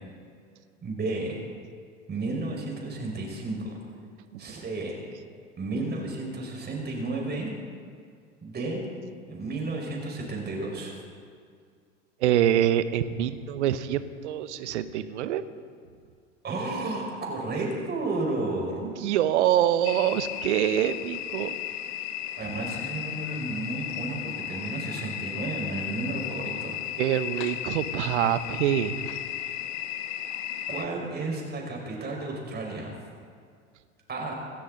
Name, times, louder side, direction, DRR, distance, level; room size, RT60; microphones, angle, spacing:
voice 1, 0.8-1.4 2.1-3.8 4.4-5.0 5.6-7.5 8.4-8.8 9.3-10.9 16.4-18.8 22.4-26.8 30.7-32.9 34.1-34.3, right 2 dB, 25° right, 0 dB, 5.1 m, -32 dB
voice 2, 12.2-15.4 18.8-21.6 27.0-29.1, right 11 dB, 65° right, 13 dB, 1.1 m, -25 dB
sound 1, 19.8-30.9, left 11 dB, 45° left, 1.2 m, -35 dB
26.5 x 13.0 x 4.0 m, 2.2 s
figure-of-eight pair, 80°, 38 cm